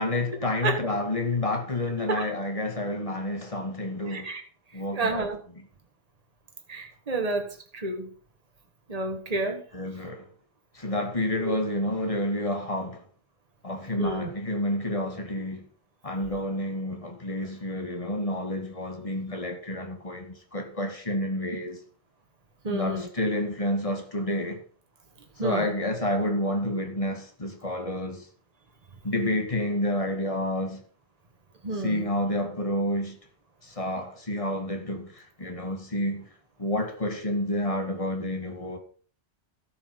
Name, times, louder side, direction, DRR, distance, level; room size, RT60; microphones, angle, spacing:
voice 1, 0.0-4.3 4.7-5.3 5.6-5.7 9.7-10.3 10.7-13.0 13.6-15.7 16.0-21.8 22.7-24.6 25.4-28.3 29.0-30.8 31.8-33.2 33.6-36.3 36.6-38.8, left 1 dB, 30° left, 1.9 m, -29 dB
voice 2, 4.0-4.4 4.9-5.4 6.7-8.1 8.9-9.6 11.4-11.5 14.0-14.3 22.6-23.1 25.4-25.7 31.6-32.0, right 3 dB, 35° right, 1.7 m, -30 dB
13.0 x 6.3 x 5.2 m
omnidirectional pair, 1.1 m